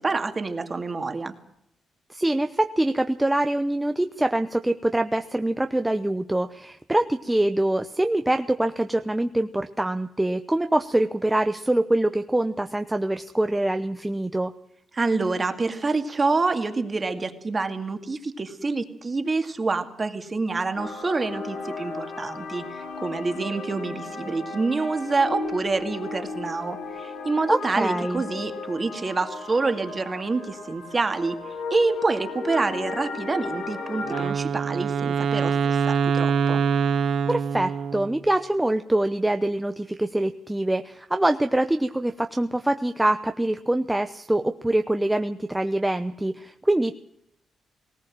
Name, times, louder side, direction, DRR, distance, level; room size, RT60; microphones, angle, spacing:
voice 1, 0.0-1.3 14.9-31.4 31.7-36.6, right 3 dB, 25° right, 7 dB, 2.2 m, -27 dB
voice 2, 2.1-14.5 27.5-28.2 37.3-46.9, right 1 dB, 10° right, 8 dB, 0.8 m, -24 dB
sound 1, 20.7-34.3, left 3 dB, 85° left, 5.0 m, -35 dB
Wind instrument woodwind instrument, 34.0-38.2, right 6 dB, 60° right, 1.1 m, -24 dB
19.5 x 18.5 x 7.6 m, 0.77 s
cardioid pair, 135°, 0 cm